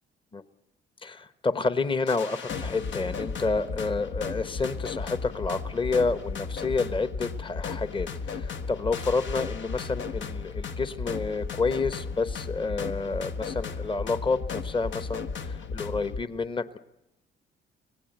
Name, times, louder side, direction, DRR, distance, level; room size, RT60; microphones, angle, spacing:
voice 1, 1.0-16.8, left 4 dB, 25° left, 13 dB, 1.1 m, -29 dB
sound 1, 2.1-16.2, left 5 dB, 70° left, 1.3 m, -35 dB
25.5 x 18.0 x 8.0 m, 0.88 s
cardioid pair, 90°, 20 cm